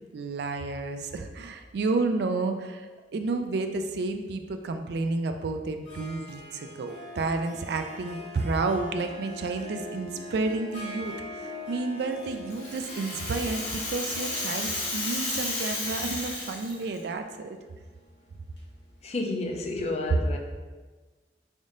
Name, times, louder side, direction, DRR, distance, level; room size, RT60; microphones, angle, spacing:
voice 1, 0.1-17.6, right 3 dB, 65° right, 6 dB, 0.3 m, -31 dB
Harp, 5.8-19.4, left 1 dB, 80° left, 1.3 m, -44 dB
Rattle (instrument), 12.2-17.0, left 2 dB, 65° left, 1.1 m, -33 dB
voice 2, 19.0-20.4, left 2 dB, 35° left, 3 dB, 0.4 m, -30 dB
3.5 x 2.5 x 3.7 m, 1.3 s
head